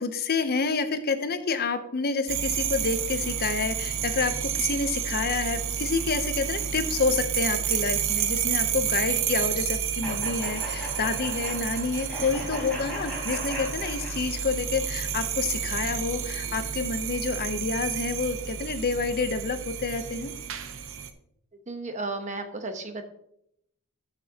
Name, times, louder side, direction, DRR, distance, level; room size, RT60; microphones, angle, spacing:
voice 1, 0.0-20.3, left 4 dB, 45° left, 10 dB, 0.6 m, -28 dB
sound 1, 2.3-21.1, right 8 dB, 60° right, 0.7 m, -30 dB
sound 2, 10.0-14.6, equal, 5° left, 3.4 m, -38 dB
voice 2, 21.7-23.0, right 3 dB, 35° right, 7 dB, 0.9 m, -33 dB
13.0 x 6.1 x 2.8 m, 0.73 s
head